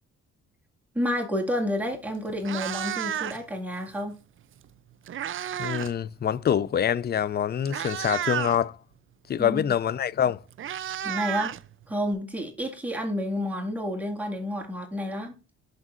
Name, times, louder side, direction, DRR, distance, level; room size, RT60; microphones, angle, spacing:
voice 1, 0.9-4.1 9.4-9.6 11.0-11.6 11.9-15.3, equal, 5° right, 2.1 m, -30 dB
Meow, 1.8-1.9 2.3-3.6 4.6-6.0 6.2-6.5 7.2-7.3 7.6-8.6 9.9-10.0 10.2-12.1, right 10 dB, 45° right, 0.5 m, -32 dB
voice 2, 5.6-8.8 9.3-10.4, left 9 dB, 35° left, 0.4 m, -25 dB
11.0 x 3.9 x 2.5 m
cardioid pair, 90°, 30 cm